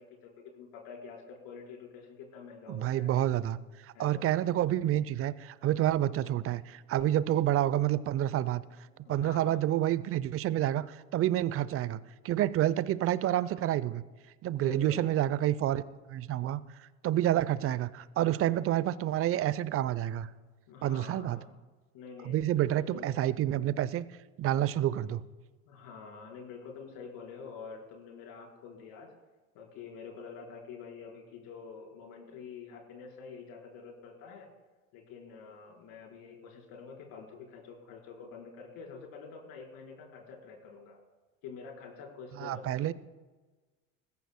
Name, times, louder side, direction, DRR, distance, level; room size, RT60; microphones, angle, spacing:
voice 1, 0.0-3.2 3.9-4.2 8.9-9.6 14.5-15.1 20.7-21.6 21.9-23.1 25.7-29.1 29.5-34.5 34.9-41.0 41.4-42.9, left 5 dB, 55° left, 0 dB, 4.4 m, -47 dB
voice 2, 2.7-3.6 4.0-8.6 9.1-12.0 12.2-14.0 14.4-15.8 16.1-16.6 17.0-20.3 20.8-21.4 22.3-24.1 24.4-25.2 42.4-42.9, right 12 dB, 35° right, 18 dB, 0.6 m, -28 dB
20.5 x 15.5 x 2.2 m, 1.3 s
hypercardioid pair, 75°, 40 cm